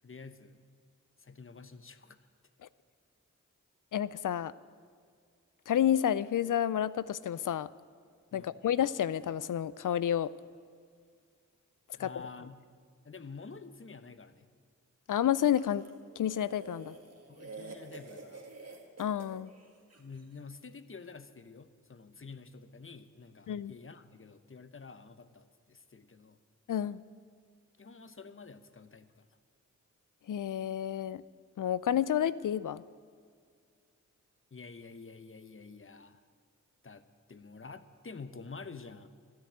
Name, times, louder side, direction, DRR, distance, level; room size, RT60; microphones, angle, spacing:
voice 1, 0.0-0.7 1.2-2.2 8.3-8.6 11.9-12.6 13.0-14.5 17.3-18.5 20.0-26.4 27.8-29.2 34.5-36.2 36.8-39.1, left 4 dB, 45° left, 12 dB, 1.0 m, -49 dB
voice 2, 3.9-4.5 5.7-7.7 8.3-10.3 12.0-12.3 15.1-15.9 16.2-17.0 19.0-19.5 23.5-23.7 26.7-27.0 30.3-31.2 31.6-32.8, left 10 dB, 80° left, 18 dB, 0.5 m, -30 dB
sound 1, 15.5-20.2, right 3 dB, 50° right, 2.0 m, -49 dB
13.0 x 10.5 x 8.6 m, 2.1 s
cardioid pair, 40°, 31 cm